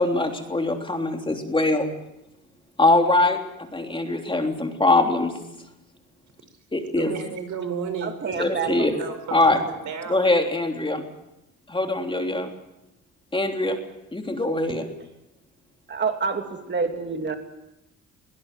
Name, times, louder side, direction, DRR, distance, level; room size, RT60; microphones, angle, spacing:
voice 1, 0.0-1.9 2.8-3.4 3.7-5.3 6.7-7.1 8.4-8.9 9.3-9.6 10.1-11.0 11.7-12.5 13.3-13.8 14.1-14.9, left 2 dB, 15° left, 3 dB, 3.4 m, -22 dB
voice 2, 7.0-10.3, right 6 dB, 75° right, 8 dB, 4.8 m, -33 dB
voice 3, 8.0-9.0 15.9-17.3, right 5 dB, 35° right, 5 dB, 3.0 m, -28 dB
23.5 x 17.5 x 7.5 m, 0.90 s
cardioid pair, 90°, 30 cm